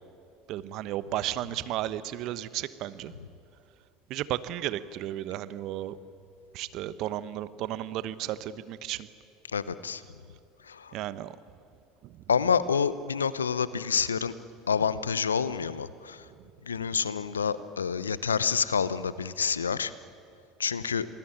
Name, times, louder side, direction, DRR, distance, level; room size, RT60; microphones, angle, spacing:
voice 1, 0.5-3.1 4.1-6.0 6.5-9.1 10.9-11.4 12.0-12.2, right 13 dB, 55° right, 15 dB, 1.1 m, -34 dB
voice 2, 9.5-10.0 10.6-10.9 12.3-14.3 14.7-16.2 16.6-19.9 20.6-21.1, left 6 dB, 90° left, 16 dB, 0.8 m, -28 dB
28.0 x 20.5 x 8.9 m, 2.4 s
hypercardioid pair, 70°, 0 cm